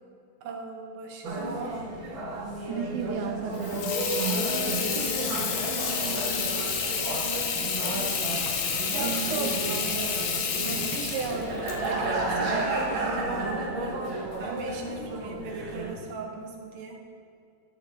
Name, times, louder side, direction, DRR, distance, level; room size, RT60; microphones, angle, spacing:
voice 1, 0.4-1.8 5.9-8.1 8.9-17.0, right 4 dB, 65° right, 0 dB, 2.2 m, -37 dB
sound 1, 1.2-15.9, right 2 dB, 45° right, 2.0 m, -33 dB
voice 2, 2.7-5.2 9.0-9.6, right 7 dB, 90° right, 5 dB, 2.1 m, -34 dB
Water tap faucet / Sink (filling or washing), 3.5-13.1, left 6 dB, 85° left, 2.4 m, -30 dB
12.0 x 7.8 x 3.7 m, 2.5 s
omnidirectional pair, 3.3 m